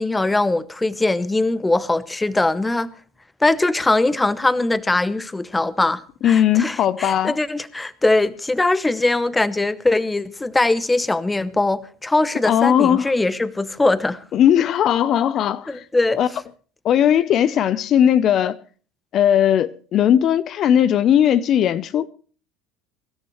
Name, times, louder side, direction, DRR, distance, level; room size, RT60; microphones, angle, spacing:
voice 1, 0.0-2.9 3.4-14.2 15.7-16.2, left 2 dB, 10° left, 0.8 m, -21 dB
voice 2, 6.2-7.4 12.4-13.1 14.3-15.8 16.2-16.3 16.8-18.6 19.1-22.1, left 10 dB, 45° left, 0.6 m, -18 dB
23.5 x 12.5 x 3.1 m
supercardioid pair, 115°, 0 cm